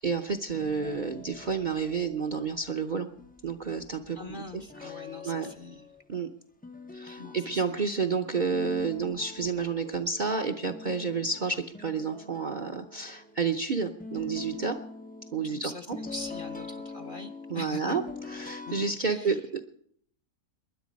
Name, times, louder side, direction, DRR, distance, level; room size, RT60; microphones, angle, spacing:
voice 1, 0.0-3.1 3.4-4.9 5.2-5.5 6.1-6.3 6.9-14.8 15.3-16.0 17.5-18.0 18.3-19.6, right 5 dB, 40° right, 8 dB, 0.7 m, -30 dB
sound 1, 0.5-2.9 3.2-6.2 6.6-13.7 14.0-18.9, left 3 dB, 15° left, 0.3 m, -45 dB
voice 2, 4.1-5.9 7.2-7.9 15.4-18.0 18.7-18.8 19.1-19.4, left 3 dB, 40° left, 5 dB, 0.8 m, -42 dB
20.0 x 10.5 x 5.2 m, 0.63 s
omnidirectional pair, 1.6 m